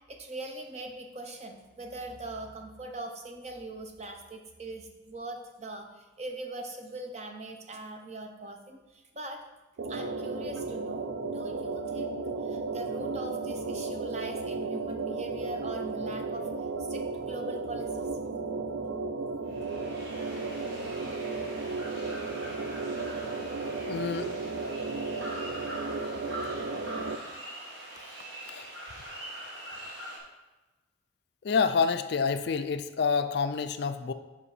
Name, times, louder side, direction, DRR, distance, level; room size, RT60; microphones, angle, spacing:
voice 1, 0.1-9.4 9.9-12.2 12.5-16.5 16.8-18.1, right 2 dB, 35° right, 4 dB, 0.7 m, -41 dB
sound 1, 9.8-27.2, right 3 dB, 80° right, 0.5 m, -34 dB
sound 2, 19.5-30.2, right 1 dB, 60° right, 1.7 m, -43 dB
voice 2, 23.8-24.3 28.5-28.7 31.4-34.1, left 5 dB, 55° left, 9 dB, 0.3 m, -28 dB
5.2 x 5.1 x 4.8 m, 1.1 s
head